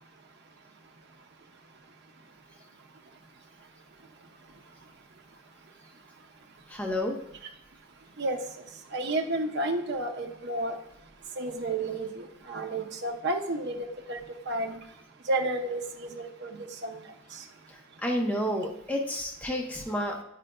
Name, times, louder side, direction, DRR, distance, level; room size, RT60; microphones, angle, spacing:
voice 1, 6.7-7.2 18.0-20.2, equal, 5° left, 0 dB, 0.6 m, -30 dB
voice 2, 8.9-10.8 11.4-14.2 14.5-14.8 15.3-17.0 17.3-17.4, right 2 dB, 55° right, 4 dB, 0.7 m, -31 dB
8.8 x 5.0 x 2.2 m, 0.82 s
head